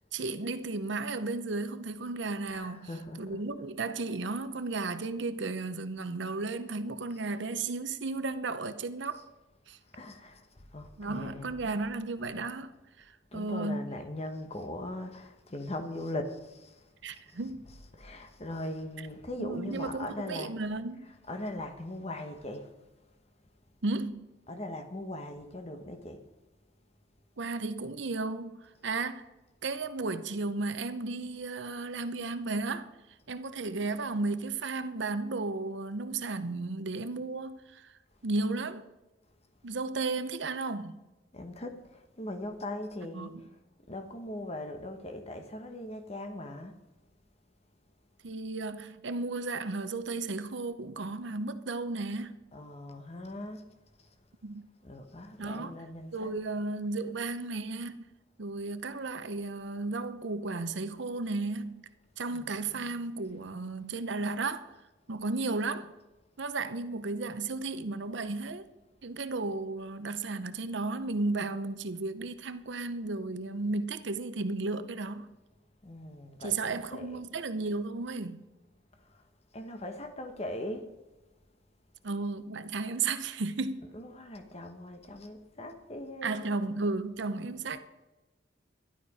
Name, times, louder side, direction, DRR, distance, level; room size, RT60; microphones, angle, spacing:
voice 1, 0.1-2.9 3.2-9.2 9.7-9.8 11.0-14.0 17.0-17.7 19.4-21.1 23.8-24.3 27.4-29.3 29.6-32.9 33.3-37.9 38.2-38.8 39.6-41.0 43.1-43.3 48.2-52.4 54.4-54.7 55.4-55.7 56.1-58.1 58.4-61.8 62.2-64.7 65.1-65.9 66.4-68.7 69.0-75.3 76.4-78.4 82.0-83.9 86.2-87.8, right 3 dB, 65° right, 0.7 m, -34 dB
voice 2, 2.5-3.4 9.1-9.2 9.9-11.8 13.3-20.6 21.0-22.7 24.5-26.3 41.3-43.5 43.9-46.8 52.5-53.6 54.0-54.1 54.8-56.3 62.3-63.1 75.8-77.2 78.9-79.2 79.5-80.9 83.8-86.5, left 1 dB, 30° left, 1.1 m, -40 dB
12.5 x 11.5 x 4.9 m
head